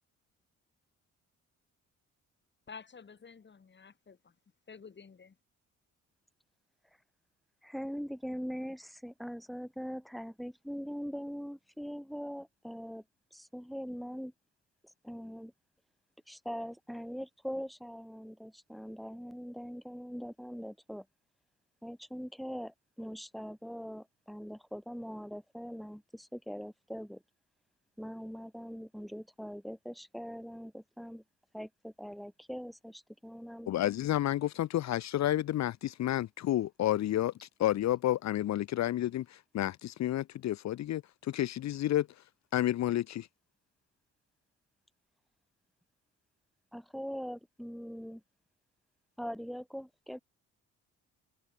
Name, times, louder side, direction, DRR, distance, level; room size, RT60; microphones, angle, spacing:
voice 1, 2.7-4.3 4.7-5.3, left 5 dB, 35° left, 4.6 m, -51 dB
voice 2, 7.6-13.0 13.3-14.3 15.0-15.5 16.3-21.1 21.8-27.2 28.0-31.2 31.5-33.7 46.7-48.2 49.2-50.2, equal, ahead, 4.5 m, -42 dB
voice 3, 33.7-42.2 42.5-43.3, left 13 dB, 65° left, 0.8 m, -31 dB
cardioid pair, 90°, 30 cm